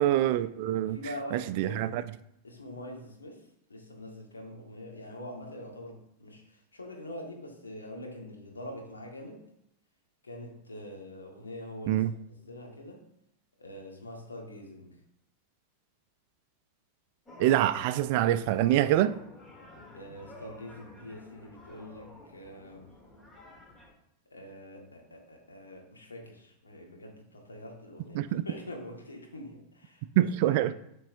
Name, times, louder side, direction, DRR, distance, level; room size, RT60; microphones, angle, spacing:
voice 1, 0.0-1.0 1.3-2.0 11.9-12.1 17.4-19.1 28.2-28.4 30.2-30.7, right 13 dB, 45° right, 13 dB, 0.4 m, -25 dB
voice 2, 0.7-2.0 2.4-3.4 3.7-9.4 10.2-12.0 12.4-13.0 13.6-15.0 19.9-22.9 24.3-30.7, left 1 dB, 75° left, 0 dB, 1.6 m, -44 dB
sound 1, 17.3-23.9, left 1 dB, 15° left, 1.4 m, -50 dB
11.5 x 4.6 x 2.6 m, 0.78 s
figure-of-eight pair, 90°, 0 cm